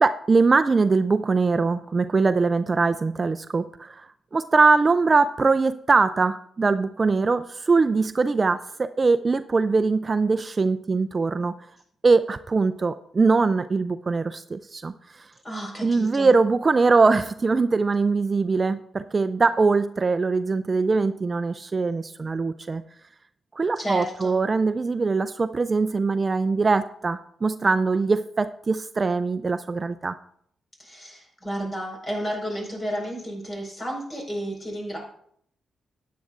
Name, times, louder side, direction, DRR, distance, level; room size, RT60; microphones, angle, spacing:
voice 1, 0.0-11.5 12.0-15.3 15.8-22.8 23.6-30.2, right 4 dB, 35° right, 11 dB, 0.4 m, -22 dB
voice 2, 15.4-16.3 23.8-24.4 30.8-35.0, equal, 30° left, 0 dB, 4.7 m, -32 dB
13.5 x 9.3 x 2.5 m, 0.65 s
cardioid pair, 85°, 0 cm